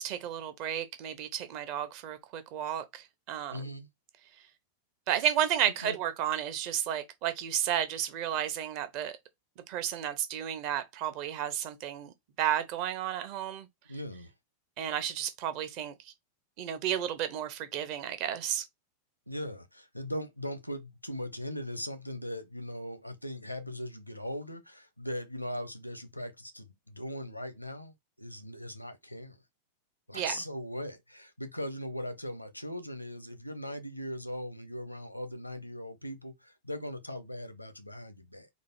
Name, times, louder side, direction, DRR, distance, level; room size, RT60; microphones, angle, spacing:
voice 1, 0.0-3.6 5.1-9.2 9.7-13.7 14.8-15.9 16.6-18.6 30.1-30.4, right 10 dB, 45° right, 0.9 m, -32 dB
voice 2, 3.5-3.9 5.8-6.0 13.9-14.3 19.3-29.4 30.1-38.5, equal, 90° left, 0.9 m, -39 dB
4.1 x 2.7 x 4.3 m
figure-of-eight pair, 90°, 0 cm